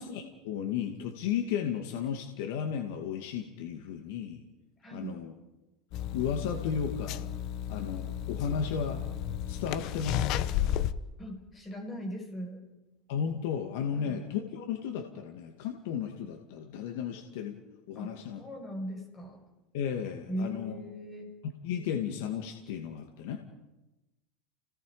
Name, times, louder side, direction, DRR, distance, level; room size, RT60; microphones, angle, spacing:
voice 1, 0.0-4.4 4.9-5.3 6.1-7.3 7.7-9.0 9.5-10.8 13.1-17.6 17.9-18.4 19.7-20.7 21.6-23.4, left 7 dB, 80° left, 3 dB, 2.2 m, -34 dB
voice 2, 4.8-5.1 11.2-12.6 13.9-14.2 17.9-19.4 20.3-21.3, equal, 20° left, 2 dB, 6.2 m, -39 dB
sound 1, 5.9-10.9, left 10 dB, 50° left, 0.9 m, -33 dB
30.0 x 18.5 x 5.1 m, 1.0 s
supercardioid pair, 145°, 0 cm